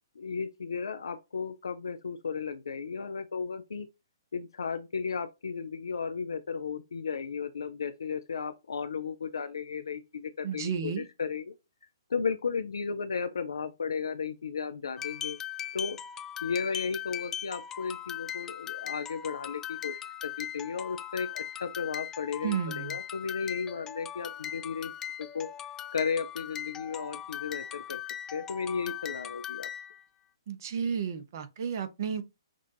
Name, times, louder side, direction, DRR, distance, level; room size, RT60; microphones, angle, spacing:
voice 1, 0.2-3.9 4.3-11.5 12.1-15.4 15.7-16.0 16.4-24.9 25.2-25.5 25.9-28.0 28.3-29.7, left 5 dB, 75° left, 0.5 m, -34 dB
voice 2, 10.4-11.0 22.4-23.0 30.5-32.2, right 7 dB, 50° right, 0.8 m, -32 dB
sound 1, 15.0-30.0, left 10 dB, 15° left, 0.4 m, -39 dB
6.1 x 2.4 x 2.7 m
figure-of-eight pair, 130°, 2 cm